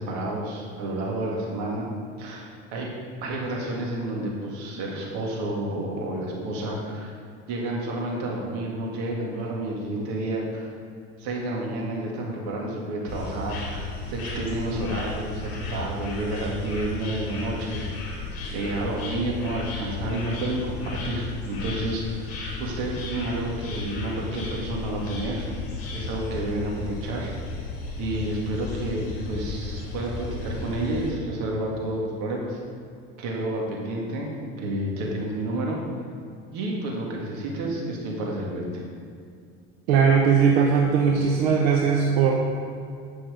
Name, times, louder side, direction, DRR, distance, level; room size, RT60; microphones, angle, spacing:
voice 1, 0.0-1.9 2.2-2.9 3.2-7.1 7.5-10.7 11.2-17.8 18.5-22.3 22.6-25.5 25.9-27.3 28.0-32.6 33.2-34.3 34.6-35.8 36.5-38.8, right 1 dB, 65° right, -2 dB, 2.1 m, -30 dB
sound 1, 13.1-31.1, left 3 dB, 50° left, 2.4 m, -34 dB
voice 2, 39.9-42.4, right 6 dB, 90° right, 0 dB, 0.9 m, -19 dB
8.8 x 6.1 x 5.0 m, 2.3 s
supercardioid pair, 125°, 31 cm